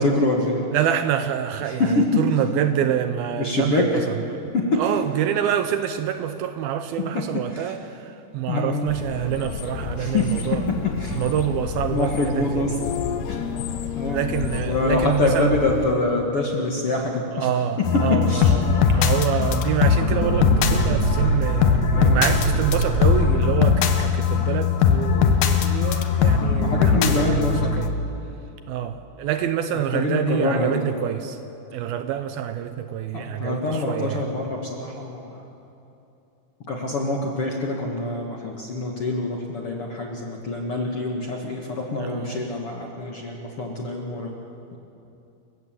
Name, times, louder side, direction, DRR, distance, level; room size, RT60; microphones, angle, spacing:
voice 1, 0.0-0.6 1.7-2.0 3.4-3.9 4.7-4.8 7.5-7.7 8.5-8.8 10.0-10.3 11.0-11.2 11.9-12.7 13.3-13.4 14.0-14.2 14.6-17.5 18.3-18.5 19.4-19.5 21.9-22.3 26.6-27.6 29.9-30.7 33.1-35.4 36.7-44.4, left 2 dB, 50° left, 0 dB, 1.9 m, -25 dB
voice 2, 0.7-10.7 11.1-12.7 14.1-15.6 17.3-27.2 27.6-27.9 28.7-31.4 31.7-34.3 42.0-42.4, right 10 dB, 75° right, 9 dB, 2.4 m, -26 dB
sound 1, 8.9-15.9, left 8 dB, 80° left, 3.0 m, -31 dB
sound 2, 17.8-27.9, left 6 dB, 65° left, 2.5 m, -20 dB
sound 3, 18.4-18.5 18.9-19.4 19.7-23.7, right 2 dB, 60° right, 1.7 m, -26 dB
28.5 x 16.5 x 7.6 m, 2.8 s
omnidirectional pair, 4.8 m